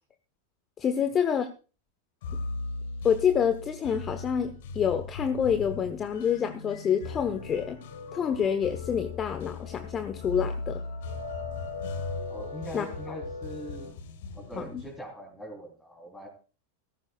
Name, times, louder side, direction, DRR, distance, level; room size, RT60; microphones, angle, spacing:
voice 1, 0.8-1.5 3.0-7.8 8.1-10.8 12.7-12.8, left 8 dB, 25° left, 10 dB, 1.1 m, -27 dB
sound 1, 2.2-15.0, left 3 dB, 55° left, 1.8 m, -39 dB
sound 2, 7.0-13.9, left 3 dB, 85° left, 3.9 m, -42 dB
voice 2, 12.3-13.9 14.3-16.3, equal, 10° left, -1 dB, 3.4 m, -42 dB
16.5 x 15.0 x 2.4 m, 0.35 s
figure-of-eight pair, 90°, 0 cm